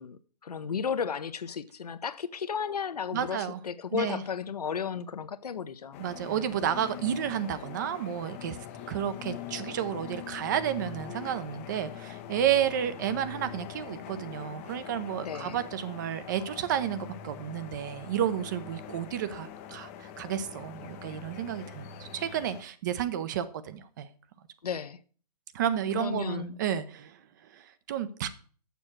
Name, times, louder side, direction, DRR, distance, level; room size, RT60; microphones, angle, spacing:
voice 1, 0.0-6.0 15.2-15.6 24.6-25.0 25.9-26.6, left 7 dB, 65° left, 0.7 m, -34 dB
voice 2, 3.1-3.6 3.9-4.2 6.0-8.6 8.9-24.1 25.5-27.2 27.5-28.3, right 10 dB, 30° right, 0.6 m, -31 dB
sound 1, 5.9-22.6, left 9 dB, 20° left, 0.5 m, -43 dB
6.9 x 6.2 x 6.0 m
figure-of-eight pair, 135°, 21 cm